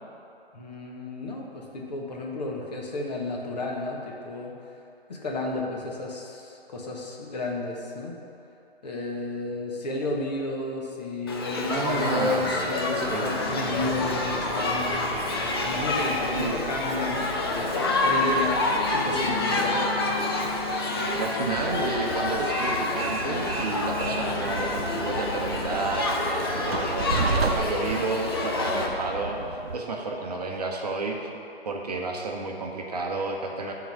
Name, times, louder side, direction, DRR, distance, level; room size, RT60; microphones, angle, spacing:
voice 1, 0.5-4.5 5.1-8.2 8.8-15.1 15.6-19.9, left 2 dB, 40° left, -1 dB, 1.2 m, -32 dB
Shout / Human group actions, 11.3-28.9, left 2 dB, 25° left, 0.6 m, -28 dB
sound 1, 11.6-26.0, left 2 dB, ahead, 1.7 m, -38 dB
voice 2, 11.7-12.5 12.9-13.4 16.4-16.6 20.8-20.9 21.2-31.2 31.6-33.7, right 3 dB, 40° right, 0 dB, 0.8 m, -31 dB
Train, 21.4-29.8, right 4 dB, 70° right, 0.8 m, -33 dB
10.5 x 3.9 x 5.9 m, 2.8 s
figure-of-eight pair, 135°, 31 cm